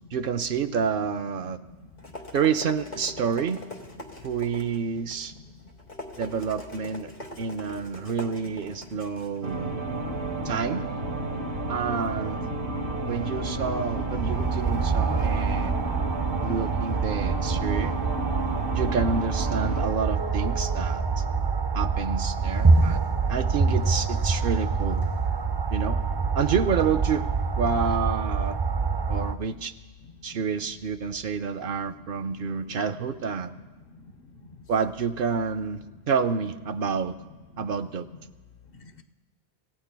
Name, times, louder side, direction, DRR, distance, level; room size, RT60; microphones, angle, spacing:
voice 1, 0.1-1.6 2.3-3.6 4.2-5.3 6.2-7.1 7.4-9.8 10.4-10.9 11.7-12.4 13.1-15.8 16.4-17.9 18.7-21.2 21.7-23.0 23.3-25.0 25.7-26.0 26.3-27.3 27.6-28.6 29.1-29.7 30.2-33.5 34.7-37.1 37.6-38.1, right 6 dB, 60° right, 11 dB, 0.7 m, -28 dB
sound 1, 1.7-10.5, left 2 dB, 45° left, 1.6 m, -43 dB
sound 2, 9.4-19.9, right 2 dB, 90° right, 1.7 m, -32 dB
sound 3, 9.9-29.3, right 4 dB, 40° right, 0.3 m, -26 dB
voice 2, 12.7-13.0 21.4-21.5 23.1-23.2 32.4-32.5 33.9-34.1 37.5-37.6 38.8-39.0, left 3 dB, 65° left, 8 dB, 0.9 m, -49 dB
26.0 x 16.0 x 2.2 m, 1.2 s
omnidirectional pair, 1.1 m